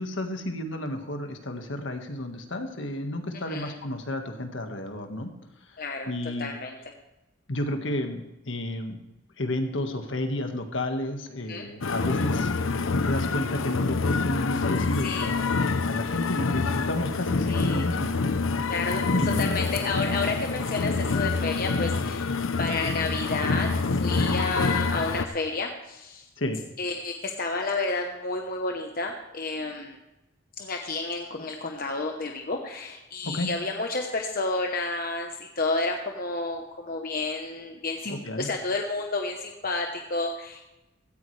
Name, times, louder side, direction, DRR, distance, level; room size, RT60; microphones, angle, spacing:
voice 1, 0.0-5.3 5.7-5.8 6.1-6.5 7.5-9.0 9.4-12.5 13.0-18.7 19.1-19.7 26.4-26.6 33.2-33.5 38.1-38.5, left 1 dB, 70° left, 5 dB, 1.7 m, -31 dB
voice 2, 5.8-6.1 6.4-6.8 11.5-11.7 15.0-15.3 17.5-17.8 18.7-19.0 19.4-22.3 22.6-26.2 26.8-30.0 30.6-40.7, left 3 dB, 45° left, 3 dB, 1.0 m, -31 dB
sound 1, 11.8-25.3, left 4 dB, 85° left, 0.8 m, -26 dB
16.5 x 14.0 x 3.3 m, 0.97 s
head